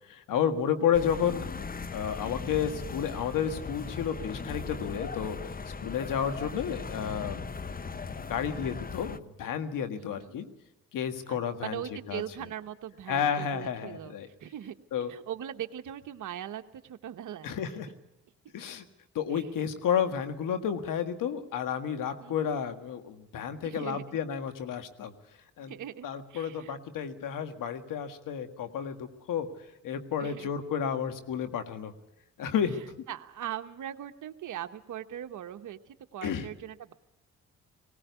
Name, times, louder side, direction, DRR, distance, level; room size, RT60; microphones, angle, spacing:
voice 1, 0.1-1.5 1.9-5.4 5.8-7.4 8.2-10.5 10.9-11.8 12.1-12.2 13.1-14.3 14.9-15.1 17.4-17.9 18.5-18.8 19.2-25.1 25.6-25.7 26.0-29.5 29.8-31.9 32.4-33.0 36.2-36.5, left 8 dB, 75° left, 8 dB, 1.8 m, -31 dB
sound 1, 0.9-9.2, left 4 dB, 25° left, 0.9 m, -38 dB
voice 2, 9.9-10.3 11.3-14.1 14.4-14.7 15.1-17.5 19.3-19.4 22.2-22.6 23.6-24.2 25.7-26.7 30.2-30.5 33.1-36.9, right 10 dB, 65° right, 7 dB, 1.2 m, -40 dB
18.5 x 18.0 x 8.2 m, 0.91 s
supercardioid pair, 60°, 32 cm